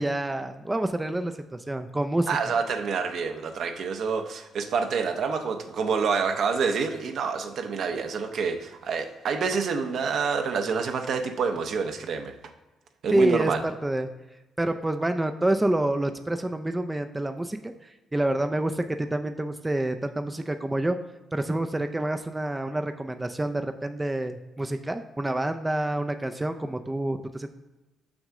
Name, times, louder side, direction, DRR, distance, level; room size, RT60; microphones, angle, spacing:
voice 1, 0.0-1.3 1.7-2.3 13.1-13.5 13.8-14.1 14.6-21.0 21.3-27.5, right 1 dB, 15° right, 7 dB, 0.4 m, -27 dB
voice 2, 2.3-12.3 13.0-13.6, right 5 dB, 65° right, 5 dB, 0.8 m, -27 dB
6.4 x 6.2 x 3.6 m, 1.1 s
cardioid pair, 90°, 0 cm